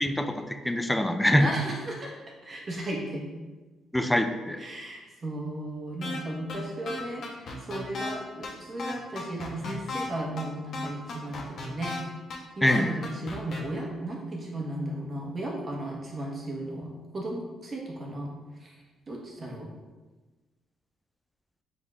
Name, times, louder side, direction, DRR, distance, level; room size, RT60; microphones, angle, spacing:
voice 1, 0.0-0.4 0.6-1.5 3.9-4.6 12.6-12.9, left 1 dB, 5° left, 7 dB, 0.3 m, -24 dB
voice 2, 1.4-2.1 2.4-3.3 4.6-11.9 12.6-18.3 18.6-18.7 19.1-19.7, right 1 dB, 40° right, -2 dB, 1.1 m, -35 dB
sound 1, 6.0-6.2 6.5-6.6 6.9-8.1 8.4-8.5 8.8-10.1 10.4-10.5 10.7-12.0 12.3-12.4 12.7-13.6, left 3 dB, 65° left, 0.8 m, -35 dB
5.0 x 3.9 x 2.4 m, 1.2 s
cardioid pair, 90°, 0 cm